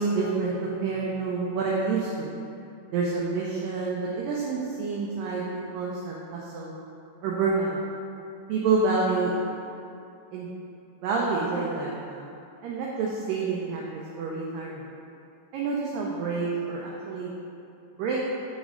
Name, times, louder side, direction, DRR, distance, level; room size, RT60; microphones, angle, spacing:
voice 1, 0.0-2.3 2.9-5.4 5.7-6.7 7.2-7.8 8.5-9.3 10.3-10.5 11.0-12.3 12.6-14.9 15.5-17.3 18.0-18.2, right 4 dB, 85° right, -3 dB, 1.9 m, -28 dB
7.1 x 3.1 x 5.0 m, 2.6 s
omnidirectional pair, 4.6 m